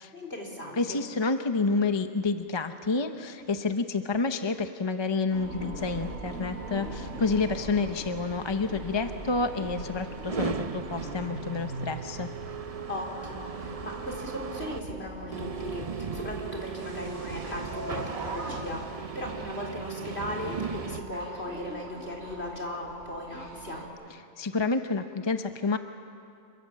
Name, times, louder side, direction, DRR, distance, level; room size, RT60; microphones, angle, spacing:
voice 1, 0.1-1.0 12.9-23.9, left 1 dB, 50° left, 0 dB, 4.0 m, -37 dB
voice 2, 0.7-12.3 24.4-25.8, left 3 dB, 25° left, 8 dB, 0.6 m, -29 dB
sound 1, 5.3-23.9, right 2 dB, 55° right, 3.6 m, -41 dB
sound 2, 5.8-14.8 15.3-21.0, right 6 dB, 40° right, 0.6 m, -38 dB
27.0 x 23.5 x 7.7 m, 2.5 s
omnidirectional pair, 1.4 m